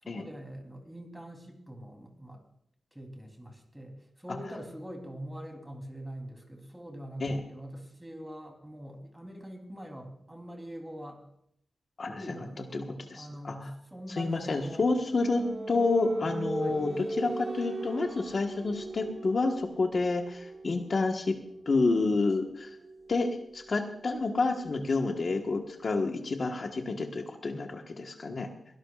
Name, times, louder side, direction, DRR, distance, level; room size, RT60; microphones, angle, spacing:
voice 1, 0.0-2.4 2.9-11.2 12.1-14.9 16.6-16.8, equal, 10° right, 3 dB, 3.5 m, -43 dB
voice 2, 13.2-13.7 14.2-21.3 21.6-22.8 23.1-28.5, left 3 dB, 50° left, 3 dB, 1.4 m, -29 dB
sound 1, 14.3-25.8, right 2 dB, 40° right, 1.1 m, -40 dB
23.0 x 17.5 x 2.5 m, 0.74 s
wide cardioid pair, 90°, 0 cm